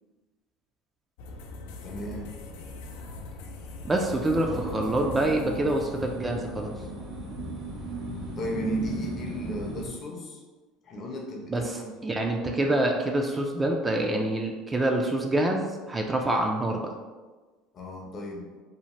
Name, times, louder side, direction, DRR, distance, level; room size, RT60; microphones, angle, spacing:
sound 1, 1.2-6.2, left 3 dB, 80° left, 0.3 m, -42 dB
voice 1, 1.8-2.3 8.4-10.4 10.8-11.9 17.7-18.5, equal, 40° left, 1 dB, 0.6 m, -35 dB
voice 2, 3.8-6.7 11.5-16.9, right 1 dB, 20° right, 2 dB, 0.3 m, -26 dB
sound 2, 4.3-9.9, right 2 dB, 60° right, 1.0 m, -36 dB
2.8 x 2.0 x 3.0 m, 1.3 s
supercardioid pair, 105°, 0 cm